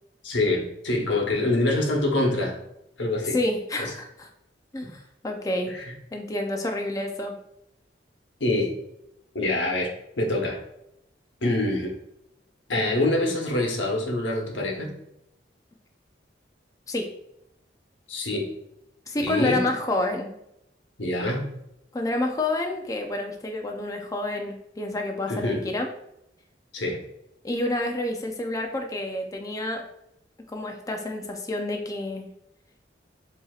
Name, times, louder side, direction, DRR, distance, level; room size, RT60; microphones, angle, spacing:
voice 1, 0.2-2.6 3.0-3.4 3.8-3.9 5.7-5.9 8.4-8.7 9.3-10.6 11.4-11.9 12.7-14.9 18.1-18.5 19.2-19.6 21.0-21.5 25.3-25.6 26.7-27.0, left 2 dB, 90° left, 1 dB, 1.0 m, -25 dB
voice 2, 3.3-4.3 4.7-5.7 6.1-7.3 16.9-17.1 19.1-20.3 21.9-25.9 27.4-29.8 30.5-32.3, left 2 dB, 20° left, 2 dB, 0.4 m, -29 dB
7.6 x 2.8 x 2.4 m, 0.82 s
head